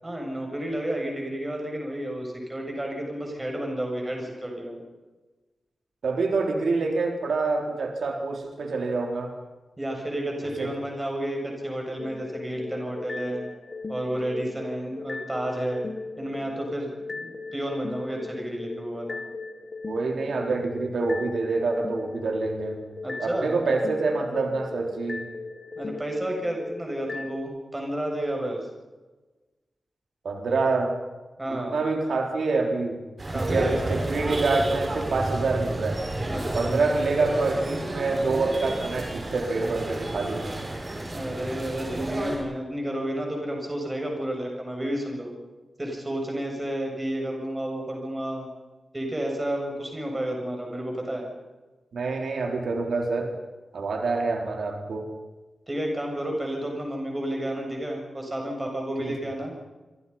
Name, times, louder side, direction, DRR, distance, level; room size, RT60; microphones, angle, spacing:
voice 1, 0.0-4.8 9.8-13.4 13.9-15.8 16.2-19.2 23.0-23.5 25.8-28.6 31.4-31.8 33.3-33.8 36.3-36.8 41.1-45.3 45.8-48.5 48.9-51.3 55.7-59.7, right 1 dB, 15° right, 1 dB, 7.2 m, -31 dB
voice 2, 6.0-9.3 10.6-10.7 19.9-22.8 23.2-25.2 30.2-31.0 31.5-33.0 33.3-36.0 36.5-40.4 51.9-53.3 53.7-55.1 59.0-59.1, right 3 dB, 90° right, 3 dB, 3.8 m, -26 dB
sound 1, 12.0-27.4, left 3 dB, 40° left, 1.6 m, -38 dB
sound 2, 33.2-42.4, right 1 dB, 35° right, 6.6 m, -31 dB
26.5 x 26.0 x 5.7 m, 1.2 s
wide cardioid pair, 180°, 0 cm